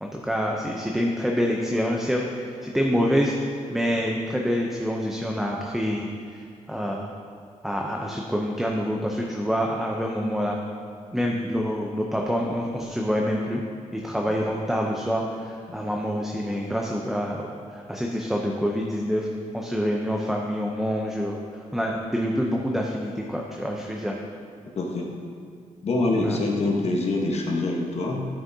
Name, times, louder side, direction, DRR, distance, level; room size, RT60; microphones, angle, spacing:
voice 1, 0.0-3.3 3.7-6.1 6.3-7.1 7.6-10.6 11.1-13.6 13.9-19.3 19.5-21.4 21.7-24.2 26.2-26.4, equal, 5° right, -1 dB, 0.5 m, -26 dB
voice 2, 24.7-25.1 25.8-28.3, left 2 dB, 55° left, -1 dB, 1.1 m, -25 dB
12.5 x 6.3 x 2.7 m, 2.2 s
wide cardioid pair, 145°, 13 cm